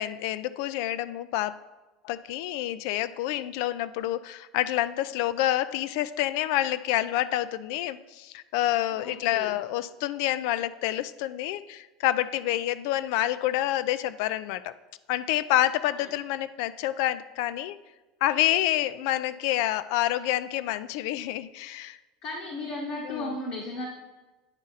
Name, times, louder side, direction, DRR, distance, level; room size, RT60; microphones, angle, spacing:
voice 1, 0.0-1.6 2.0-14.7 15.1-17.8 18.2-22.0 23.1-23.4, left 14 dB, 75° left, 16 dB, 0.3 m, -28 dB
voice 2, 8.9-9.5 16.0-16.1 22.2-23.9, left 2 dB, 55° left, -1 dB, 1.2 m, -35 dB
9.7 x 4.0 x 3.9 m, 1.2 s
supercardioid pair, 115°, 2 cm